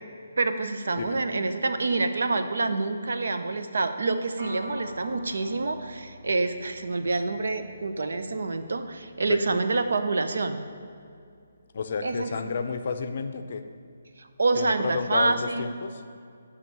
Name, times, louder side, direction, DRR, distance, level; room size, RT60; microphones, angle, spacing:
voice 1, 0.4-10.6 12.0-12.5 14.2-15.7, right 3 dB, 80° right, 8 dB, 0.6 m, -27 dB
sound 1, 4.4-13.9, right 1 dB, 35° right, 1.0 m, -50 dB
voice 2, 9.2-9.6 11.7-13.6 14.6-16.0, left 5 dB, 45° left, 8 dB, 0.5 m, -31 dB
10.5 x 3.6 x 6.7 m, 2.4 s
hypercardioid pair, 175°, 0 cm